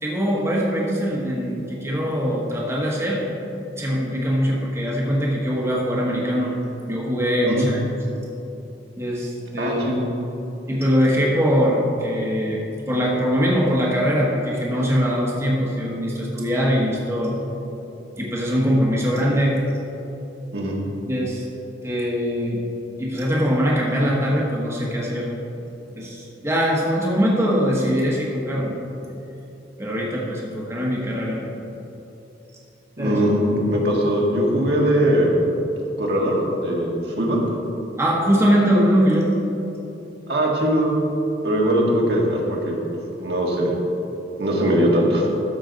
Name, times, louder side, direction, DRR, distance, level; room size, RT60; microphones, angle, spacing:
voice 1, 0.0-3.2 3.8-6.5 6.8-8.0 9.0-9.8 10.7-12.6 12.9-17.4 18.2-19.6 21.1-21.4 21.8-22.6 23.0-25.3 26.0-28.8 29.8-31.4 33.0-33.2 38.0-39.3, equal, 15° right, -4 dB, 1.2 m, -22 dB
voice 2, 9.6-10.1 20.5-20.8 33.0-35.4 36.0-37.4 40.3-40.9 41.4-42.8 43.2-43.8 44.4-45.3, equal, 65° right, -2 dB, 1.6 m, -20 dB
12.5 x 6.8 x 3.9 m, 3.0 s
head